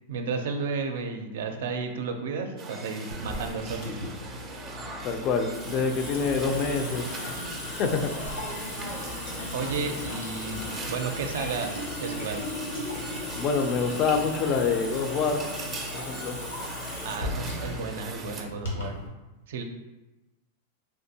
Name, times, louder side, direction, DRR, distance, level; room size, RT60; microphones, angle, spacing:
voice 1, 0.1-4.0 9.5-12.4 17.0-19.0 19.5-19.6, right 4 dB, 75° right, 5 dB, 0.4 m, -33 dB
sound 1, 2.6-18.4, right 3 dB, 20° right, 0.5 m, -40 dB
Water tap faucet / Sink (filling or washing) / Drip, 3.1-19.1, left 1 dB, 90° left, 1.1 m, -36 dB
voice 2, 5.0-7.4 7.8-8.5 13.4-15.4 15.9-16.4, left 5 dB, 40° left, 5 dB, 0.4 m, -27 dB
3.5 x 2.5 x 2.7 m, 1.1 s
hypercardioid pair, 130°, 0 cm